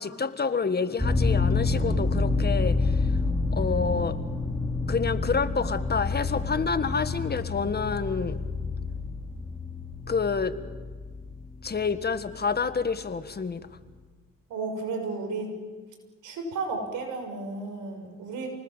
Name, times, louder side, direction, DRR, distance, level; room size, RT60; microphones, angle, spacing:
voice 1, 0.0-3.0 3.5-4.2 4.9-8.4 10.1-10.5 11.6-13.6, left 5 dB, 35° left, 11 dB, 1.7 m, -28 dB
sound 1, 1.0-12.3 12.6-12.7, left 3 dB, 5° left, 4.6 m, -28 dB
voice 2, 14.5-15.5 16.2-18.5, right 3 dB, 85° right, 4 dB, 6.5 m, -33 dB
29.0 x 19.5 x 7.5 m, 1.4 s
cardioid pair, 90°, 30 cm